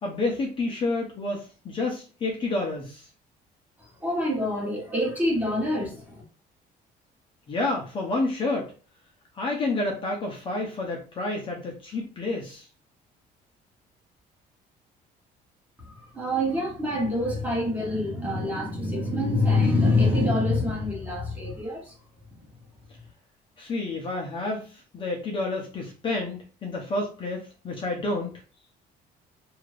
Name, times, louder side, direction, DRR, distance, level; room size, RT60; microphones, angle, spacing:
voice 1, 0.0-3.1 7.5-8.7 9.4-12.6 23.6-28.4, left 2 dB, 30° left, 0.7 m, -29 dB
voice 2, 3.8-6.2 15.8-21.9 22.3-22.4, left 2 dB, 10° right, 1.1 m, -26 dB
2.8 x 2.5 x 3.2 m
cardioid pair, 165°, 16 cm